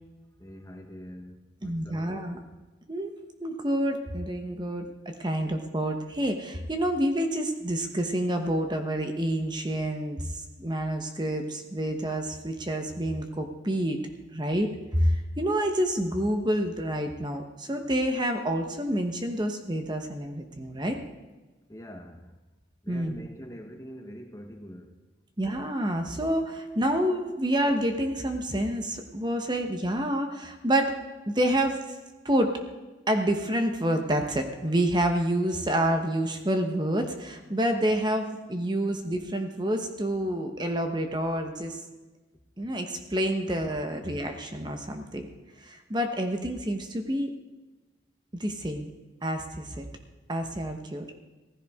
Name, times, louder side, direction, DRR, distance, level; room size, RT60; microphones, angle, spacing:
voice 1, 0.4-2.2 21.7-22.4 22.8-25.0, equal, 15° left, 4 dB, 1.0 m, -44 dB
voice 2, 1.6-2.4 2.9-3.1 3.4-14.0 14.3-21.0 22.9-23.2 25.4-30.9 31.3-31.8 32.2-32.5 33.1-41.8 42.6-45.3 45.6-47.3 48.4-48.9 49.2-49.8 50.3-51.2, right 1 dB, 20° right, 5 dB, 1.0 m, -28 dB
15.5 x 15.0 x 3.6 m, 1.2 s
head